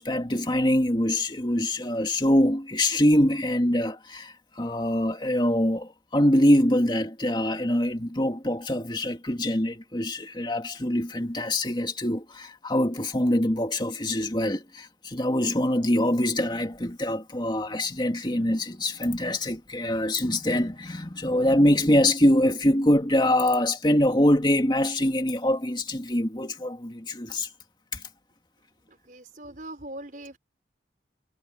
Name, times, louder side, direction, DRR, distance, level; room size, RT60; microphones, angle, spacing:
voice 1, 0.0-27.5 27.9-28.0, left 1 dB, 25° left, 2.4 m, -24 dB
voice 2, 28.9-30.4, right 1 dB, 50° right, 5.4 m, -41 dB
head